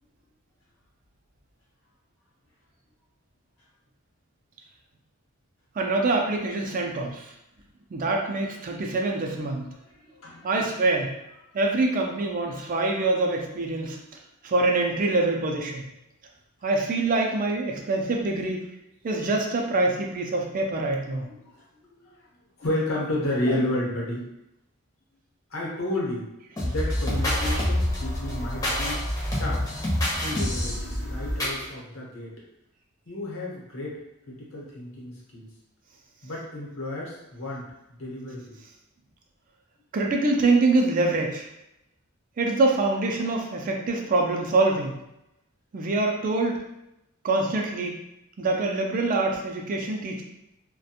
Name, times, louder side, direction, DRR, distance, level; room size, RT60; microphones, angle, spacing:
voice 1, 5.7-7.3 7.9-9.6 10.4-11.1 11.5-14.0 14.4-15.8 16.6-18.6 19.0-21.3 23.5-23.6 39.9-41.5 42.4-45.0 45.7-46.6 47.2-48.0 48.4-50.2, right 2 dB, 40° right, 1 dB, 0.4 m, -25 dB
voice 2, 9.8-10.5 21.2-21.6 22.0-22.1 22.6-24.3 25.5-26.3 26.6-29.0 29.4-29.7 30.2-32.3 33.1-34.0 34.3-35.5 36.2-37.6 38.0-38.6, left 1 dB, 70° left, -4 dB, 0.9 m, -31 dB
sound 1, 26.6-31.6, left 1 dB, 15° left, 0.6 m, -27 dB
2.4 x 2.1 x 2.8 m, 0.86 s
head